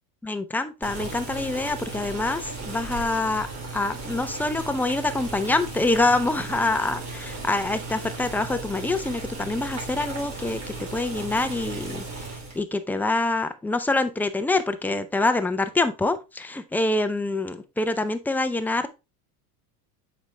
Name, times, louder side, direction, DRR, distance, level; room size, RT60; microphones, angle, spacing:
voice 1, 0.2-3.5 3.7-18.9, left 2 dB, 5° left, 9 dB, 0.5 m, -26 dB
Boiling, 0.8-12.6, right 3 dB, 35° right, 3.1 m, -36 dB
7.3 x 5.2 x 3.2 m, 0.27 s
supercardioid pair, 120°, 44 cm